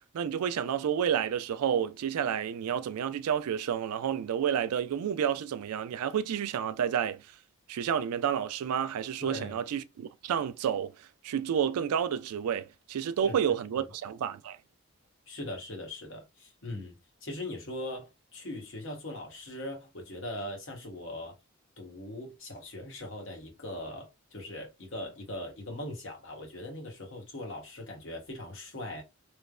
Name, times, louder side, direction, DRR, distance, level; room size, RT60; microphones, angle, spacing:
voice 1, 0.1-7.2 7.7-14.6, right 8 dB, 85° right, 0.3 m, -30 dB
voice 2, 9.2-9.6 13.2-13.4 13.8-13.9 15.3-17.0 17.2-21.4 21.8-29.0, left 1 dB, 55° left, 1.0 m, -40 dB
3.2 x 2.0 x 2.3 m
head